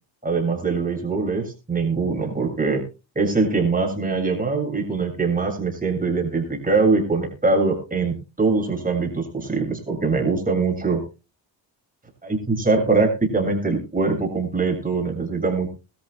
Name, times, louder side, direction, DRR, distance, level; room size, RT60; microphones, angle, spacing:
voice 1, 0.2-2.8 3.2-11.0 12.2-15.7, right 4 dB, 15° right, 1 dB, 7.2 m, -22 dB
22.5 x 14.0 x 2.2 m, 0.30 s
cardioid pair, 90°, 47 cm